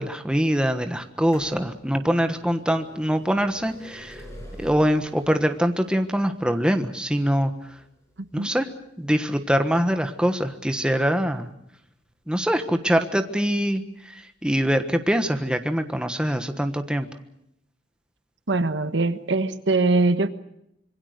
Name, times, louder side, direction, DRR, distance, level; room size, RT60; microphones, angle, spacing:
voice 1, 0.0-4.2 4.6-7.5 8.3-8.7 9.0-11.5 12.3-17.1, equal, 5° right, 7 dB, 1.3 m, -23 dB
sound 1, 1.0-12.6 13.5-13.6 14.5-14.6 14.8-14.9, equal, 15° left, 6.4 m, -47 dB
voice 2, 18.5-20.3, right 3 dB, 70° right, 11 dB, 1.3 m, -22 dB
26.0 x 22.5 x 6.6 m, 0.78 s
head